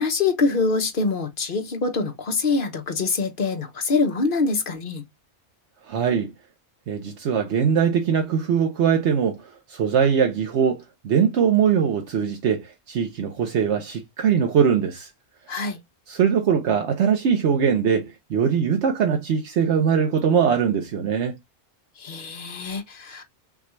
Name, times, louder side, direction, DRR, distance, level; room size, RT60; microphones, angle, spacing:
voice 1, 0.0-5.0 15.5-15.8 22.0-23.2, left 4 dB, 50° left, 1.1 m, -24 dB
voice 2, 5.9-6.3 6.9-9.4 9.7-15.1 16.1-21.3, right 7 dB, 75° right, 1.0 m, -21 dB
5.9 x 2.3 x 3.0 m
omnidirectional pair, 1.2 m